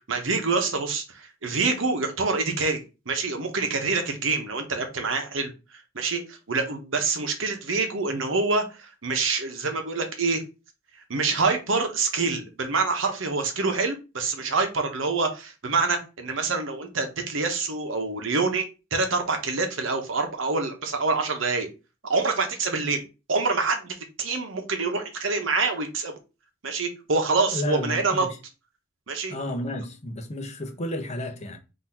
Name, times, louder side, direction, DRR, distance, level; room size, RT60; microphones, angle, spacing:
voice 1, 0.1-10.4 11.1-21.7 22.0-26.1 26.6-28.3 29.1-29.4, right 4 dB, 90° right, 1.0 m, -26 dB
voice 2, 27.5-28.4 29.3-31.6, left 1 dB, 35° left, 0.8 m, -32 dB
4.0 x 2.8 x 4.3 m
head